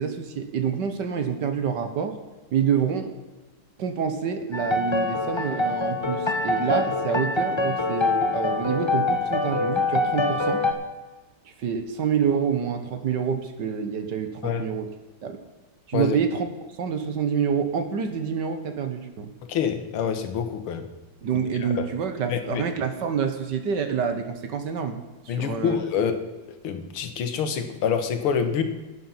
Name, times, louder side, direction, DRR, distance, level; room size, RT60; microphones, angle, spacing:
voice 1, 0.0-2.1 2.5-3.1 3.8-10.6 11.6-14.9 15.2-15.4 15.9-16.5 16.8-19.3 21.2-25.8, right 7 dB, 60° right, 8 dB, 1.6 m, -27 dB
sound 1, 4.5-10.7, left 3 dB, 25° left, 0.6 m, -25 dB
voice 2, 19.5-20.9 21.6-21.9 22.3-22.6 25.3-26.2 26.6-28.6, left 7 dB, 85° left, 8 dB, 2.1 m, -26 dB
12.5 x 9.2 x 5.7 m, 1.2 s
omnidirectional pair, 2.3 m